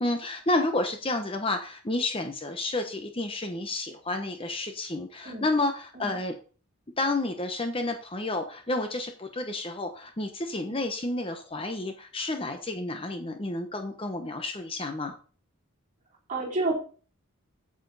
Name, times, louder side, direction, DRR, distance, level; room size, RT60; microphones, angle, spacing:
voice 1, 0.0-6.3 7.0-15.1, left 2 dB, 25° left, 6 dB, 0.9 m, -30 dB
voice 2, 16.3-16.8, right 2 dB, 35° right, -1 dB, 3.1 m, -29 dB
8.8 x 7.5 x 4.0 m, 0.38 s
head